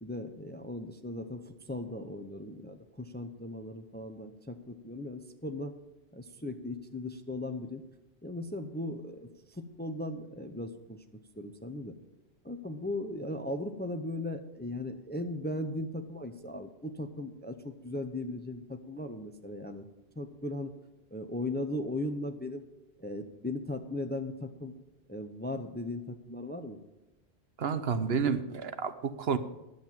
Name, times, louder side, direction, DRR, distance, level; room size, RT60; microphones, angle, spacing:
voice 1, 0.0-5.7 6.1-7.8 8.2-11.0 11.4-11.9 12.4-19.9 20.2-20.7 21.1-22.6 23.0-24.7 25.1-26.8, left 1 dB, 10° left, 8 dB, 0.5 m, -38 dB
voice 2, 27.6-29.4, right 6 dB, 65° right, 11 dB, 1.0 m, -30 dB
11.0 x 7.9 x 7.3 m, 0.99 s
omnidirectional pair, 1.1 m